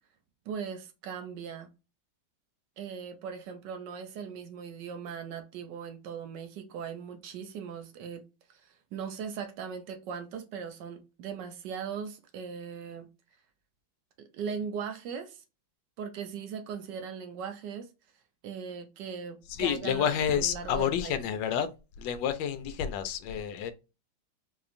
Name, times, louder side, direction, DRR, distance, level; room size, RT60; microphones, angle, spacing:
voice 1, 0.5-1.7 2.8-8.2 8.5-13.1 14.2-15.4 16.0-17.9 18.4-21.2, right 6 dB, 70° right, 1.1 m, -39 dB
voice 2, 19.6-21.7 22.0-23.7, left 9 dB, 75° left, 1.3 m, -29 dB
4.2 x 2.8 x 2.5 m
omnidirectional pair, 2.2 m